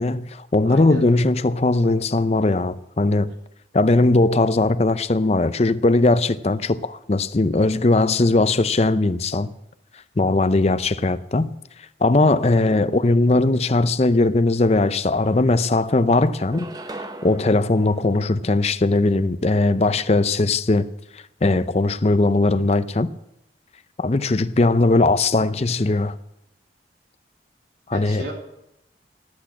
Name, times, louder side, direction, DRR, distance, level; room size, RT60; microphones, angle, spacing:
voice 1, 0.0-3.3 3.7-9.5 10.2-11.5 12.0-16.7 17.2-20.9 21.4-23.1 24.0-26.1 27.9-28.2, left 2 dB, 35° left, 0.5 m, -19 dB
voice 2, 0.6-1.0 12.4-12.8 27.9-28.3, right 1 dB, 65° right, 3.5 m, -36 dB
sound 1, 14.7-14.8 15.1-15.9 16.3-18.9, right 1 dB, 20° right, 0.8 m, -40 dB
18.5 x 8.4 x 7.2 m
head